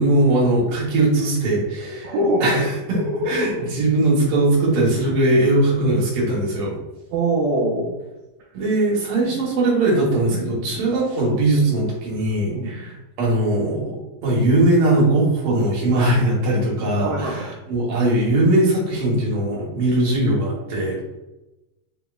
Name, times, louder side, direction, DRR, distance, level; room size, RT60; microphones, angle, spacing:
voice 1, 0.0-2.1 2.4-3.0 3.3-6.7 8.5-14.0 14.2-21.0, right 2 dB, 60° right, -4 dB, 1.7 m, -20 dB
voice 2, 2.0-3.7 7.1-7.9 9.2-9.4 10.3-10.7 12.5-12.8 17.0-17.5, right 1 dB, 80° right, -3 dB, 1.7 m, -24 dB
5.0 x 2.7 x 2.3 m, 1.0 s
omnidirectional pair, 3.8 m